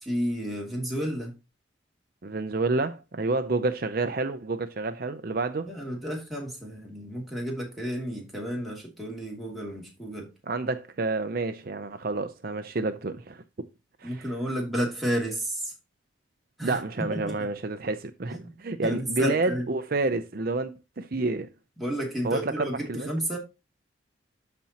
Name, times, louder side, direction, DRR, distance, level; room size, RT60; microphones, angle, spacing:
voice 1, 0.0-1.3 5.6-10.3 14.0-15.7 16.6-17.5 18.3-18.5 18.8-19.7 21.8-23.4, equal, ahead, 2.5 m, -31 dB
voice 2, 2.2-5.7 10.5-13.4 14.0-14.2 16.6-21.5 22.2-23.1, right 3 dB, 50° right, 0.6 m, -29 dB
13.0 x 4.3 x 2.9 m
head